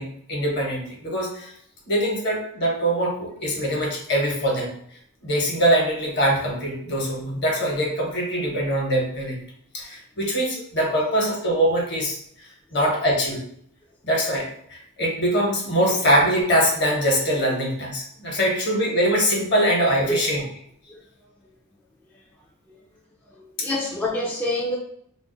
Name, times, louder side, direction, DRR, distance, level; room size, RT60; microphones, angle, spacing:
voice 1, 0.0-1.5 1.9-4.7 5.2-9.4 9.7-13.4 14.0-20.4 23.6-23.7, equal, 50° left, -1 dB, 1.0 m, -23 dB
voice 2, 23.4-24.8, left 1 dB, 5° left, -5 dB, 0.3 m, -26 dB
2.4 x 2.4 x 3.7 m, 0.68 s
head